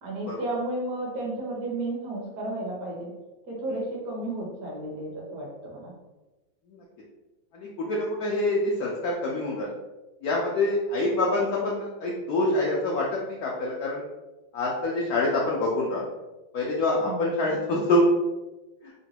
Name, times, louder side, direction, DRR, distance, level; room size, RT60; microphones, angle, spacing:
voice 1, 0.0-3.1 3.5-5.9 17.1-17.3, right 1 dB, 60° right, -2 dB, 1.1 m, -33 dB
voice 2, 7.5-9.7 10.2-14.0 14.5-16.1 16.5-18.1, left 2 dB, 90° left, -3 dB, 0.8 m, -26 dB
3.9 x 2.2 x 2.8 m, 1.1 s
omnidirectional pair, 2.1 m